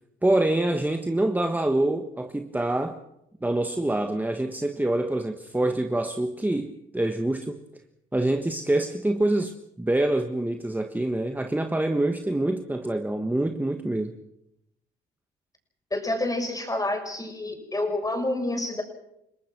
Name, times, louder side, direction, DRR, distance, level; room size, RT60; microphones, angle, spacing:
voice 1, 0.2-3.0 3.4-7.6 8.1-14.1, right 1 dB, 10° right, 6 dB, 1.4 m, -26 dB
voice 2, 15.9-18.8, left 2 dB, 15° left, 4 dB, 6.8 m, -28 dB
30.0 x 19.0 x 6.1 m, 0.81 s
cardioid pair, 90°, 20 cm